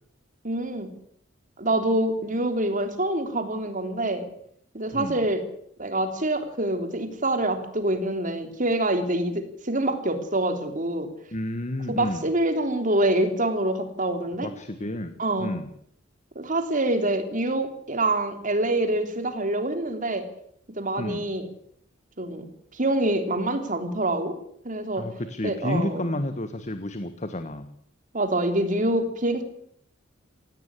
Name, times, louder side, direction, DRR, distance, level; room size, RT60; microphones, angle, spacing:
voice 1, 0.4-0.9 1.6-4.3 4.7-5.4 5.8-11.1 11.9-14.5 15.2-15.5 16.3-20.3 20.7-21.5 22.2-22.5 22.7-24.3 24.6-25.1 25.4-26.2 28.1-29.4, right 1 dB, 40° right, 8 dB, 3.3 m, -26 dB
voice 2, 11.3-12.3 14.4-15.7 21.0-21.3 25.0-27.7, left 1 dB, 35° left, 10 dB, 1.4 m, -31 dB
18.0 x 17.0 x 9.7 m, 0.68 s
head